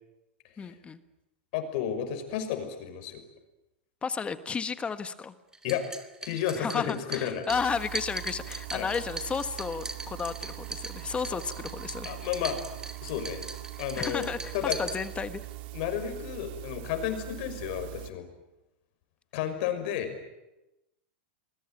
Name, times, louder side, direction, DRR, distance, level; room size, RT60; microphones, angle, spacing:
voice 1, 0.6-1.0 4.0-5.3 6.6-12.2 13.9-15.4, left 5 dB, 20° left, 11 dB, 1.5 m, -33 dB
voice 2, 1.5-3.2 5.6-5.9 6.2-7.5 8.7-8.9 11.3-11.4 12.0-12.6 13.0-13.5 13.8-14.8 15.7-18.3 19.3-20.3, left 9 dB, 55° left, 9 dB, 5.9 m, -32 dB
sound 1, 5.5-15.5, right 3 dB, 10° right, 2.4 m, -41 dB
sound 2, 7.5-18.1, right 19 dB, 60° right, 1.9 m, -42 dB
28.5 x 22.0 x 9.2 m, 0.97 s
hypercardioid pair, 115°, 6 cm